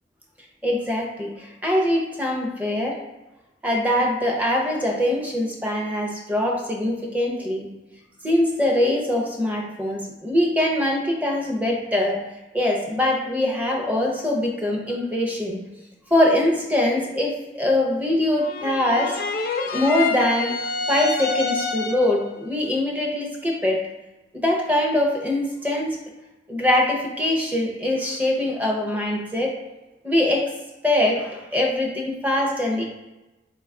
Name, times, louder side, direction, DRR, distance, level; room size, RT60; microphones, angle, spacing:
voice 1, 0.6-3.0 3.6-7.7 8.2-12.2 12.5-15.6 16.1-19.2 19.7-20.5 20.9-23.8 24.3-26.0 26.5-29.5 30.0-30.5 30.8-32.8, left 1 dB, 10° right, 0 dB, 0.5 m, -23 dB
sound 1, 18.4-22.2, left 3 dB, 50° left, 0.4 m, -27 dB
4.6 x 2.3 x 3.6 m, 1.0 s
head